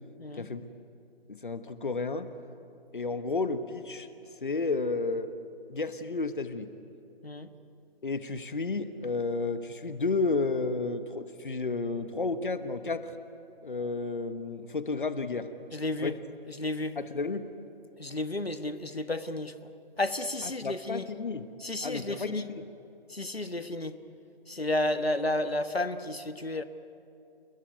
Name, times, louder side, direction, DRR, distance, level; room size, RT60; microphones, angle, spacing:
voice 1, 0.4-0.7 1.3-2.3 2.9-4.1 4.4-5.3 5.7-6.7 8.0-13.1 13.6-15.5 16.0-16.2 17.0-17.5 20.4-21.4 21.8-22.7, left 3 dB, 55° left, 11 dB, 1.4 m, -32 dB
voice 2, 15.7-16.1 16.5-17.0 18.0-19.7 20.0-21.1 21.6-22.4 23.1-24.0 24.5-26.6, left 1 dB, 90° left, 10 dB, 1.4 m, -32 dB
29.0 x 21.5 x 9.5 m, 2.7 s
figure-of-eight pair, 150°, 30 cm